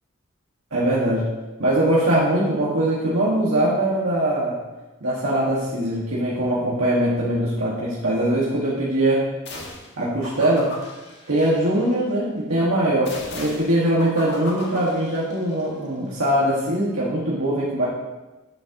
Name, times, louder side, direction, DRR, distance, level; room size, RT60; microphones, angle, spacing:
voice 1, 0.7-1.3 1.6-4.6 5.0-9.2 10.0-10.8 11.3-17.9, right 1 dB, 80° right, -6 dB, 1.7 m, -21 dB
sound 1, 9.5-9.9 10.2-12.0 13.1-15.7, left 2 dB, 55° left, 1.7 m, -37 dB
11.5 x 7.3 x 2.9 m, 1.1 s
head